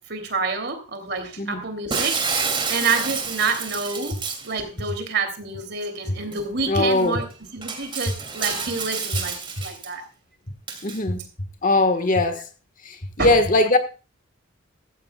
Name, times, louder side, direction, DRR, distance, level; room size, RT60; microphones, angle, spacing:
voice 1, 0.1-4.2 4.4-7.3 7.5-9.4 9.6-10.0 13.2-13.3, right 4 dB, 55° right, 2.9 m, -28 dB
Shatter, 1.9-4.5 6.3-6.4 6.9-7.0 7.6-9.9 10.7-11.0, right 5 dB, 25° right, 2.7 m, -28 dB
voice 2, 6.6-7.2 10.8-12.4 12.8-13.8, left 2 dB, 40° left, 1.4 m, -21 dB
15.5 x 14.5 x 2.3 m
head